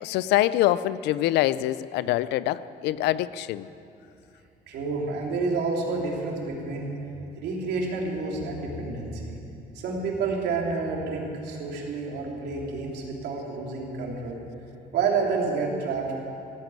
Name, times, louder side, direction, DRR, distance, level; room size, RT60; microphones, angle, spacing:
voice 1, 0.0-3.7, left 14 dB, 85° left, 16 dB, 0.5 m, -25 dB
voice 2, 4.7-7.0 7.4-9.4 9.7-14.4 14.9-16.1, right 4 dB, 75° right, -1 dB, 3.2 m, -29 dB
15.5 x 9.2 x 9.0 m, 2.6 s
cardioid pair, 110°, 17 cm